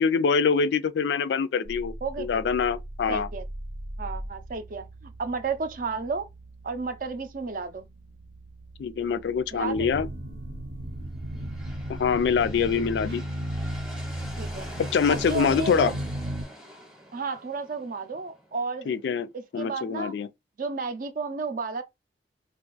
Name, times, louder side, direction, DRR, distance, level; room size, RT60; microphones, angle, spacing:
voice 1, 0.0-3.3 8.8-10.1 11.9-13.2 14.9-15.9 18.9-19.3 19.5-20.3, left 6 dB, 70° left, 0.3 m, -24 dB
sound 1, 1.6-12.7, right 1 dB, 90° right, 1.0 m, -42 dB
voice 2, 2.0-2.4 3.1-3.4 4.0-6.3 6.6-7.9 9.5-9.9 14.4-14.7 15.1-15.9 17.1-19.0 19.3-20.1 20.6-21.8, right 4 dB, 45° right, 0.4 m, -32 dB
sound 2, 9.7-16.4, right 1 dB, 70° right, 0.8 m, -34 dB
sound 3, 11.2-18.9, equal, 5° right, 0.7 m, -44 dB
2.5 x 2.4 x 3.8 m
head